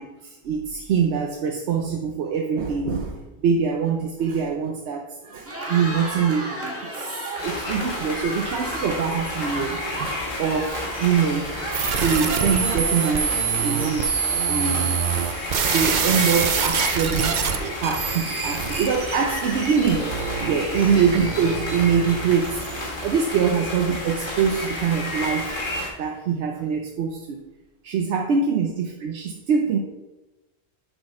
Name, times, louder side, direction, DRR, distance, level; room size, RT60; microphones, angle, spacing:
voice 1, 0.0-11.6 12.0-14.1 14.5-15.0 15.7-20.1 20.5-25.5 26.0-27.4 27.8-29.8, right 6 dB, 80° right, 2 dB, 0.9 m, -24 dB
Cheering, 5.3-13.6, right 1 dB, 15° right, 1.3 m, -34 dB
sound 1, 7.4-25.9, left 2 dB, 50° left, 1.6 m, -31 dB
sound 2, 11.7-22.9, right 7 dB, 55° right, 0.6 m, -26 dB
7.0 x 4.1 x 4.7 m, 1.1 s
omnidirectional pair, 1.1 m